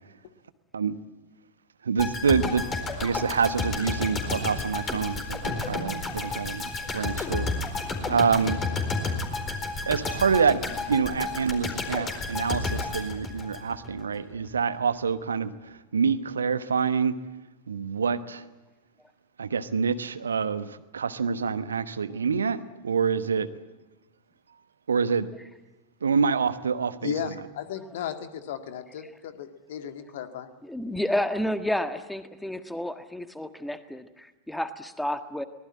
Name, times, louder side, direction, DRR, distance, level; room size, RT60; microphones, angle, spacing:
voice 1, 1.8-2.6 3.0-7.5 8.0-8.6 9.9-17.2 17.7-18.5 19.4-23.5 24.9-25.3 26.0-27.1, right 6 dB, 70° right, 13 dB, 1.1 m, -26 dB
sound 1, 2.0-14.0 14.3-14.5, left 3 dB, 25° left, 4.3 m, -31 dB
voice 2, 27.0-30.5, left 9 dB, 55° left, 8 dB, 1.9 m, -35 dB
voice 3, 30.7-35.4, left 1 dB, 5° left, 10 dB, 1.6 m, -30 dB
23.5 x 20.0 x 8.8 m, 1.1 s
figure-of-eight pair, 90°, 0 cm